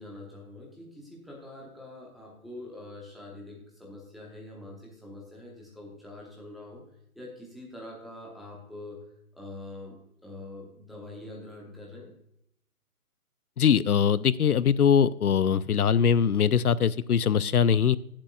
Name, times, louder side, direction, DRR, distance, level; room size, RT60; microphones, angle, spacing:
voice 1, 0.0-6.8 7.1-9.0 9.3-12.1, left 2 dB, ahead, -4 dB, 0.9 m, -44 dB
voice 2, 13.6-18.0, left 7 dB, 90° left, 19 dB, 0.5 m, -22 dB
17.0 x 7.4 x 2.3 m, 0.76 s
figure-of-eight pair, 140°, 43 cm